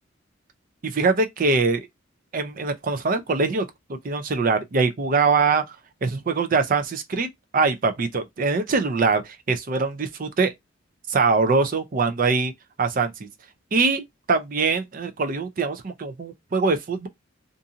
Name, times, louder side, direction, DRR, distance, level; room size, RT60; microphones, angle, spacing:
voice 1, 0.8-1.9 2.3-3.7 4.0-5.8 6.0-7.3 7.5-10.5 11.1-12.5 12.8-13.3 13.7-14.0 14.3-17.1, right 4 dB, 40° right, 0.5 m, -23 dB
2.6 x 2.4 x 2.7 m
head